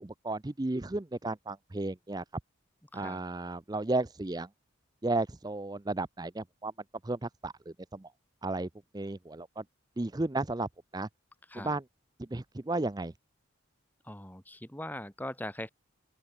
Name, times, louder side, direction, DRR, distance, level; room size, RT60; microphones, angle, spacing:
voice 1, 0.0-2.2 2.9-4.5 5.0-6.7 7.0-8.1 8.4-8.7 8.9-9.6 10.0-10.7 10.9-11.1 11.5-11.8 12.2-13.1, right 2 dB, 20° right, 0.5 m, -33 dB
voice 2, 14.0-15.7, left 1 dB, 10° left, 3.2 m, -41 dB
open air
head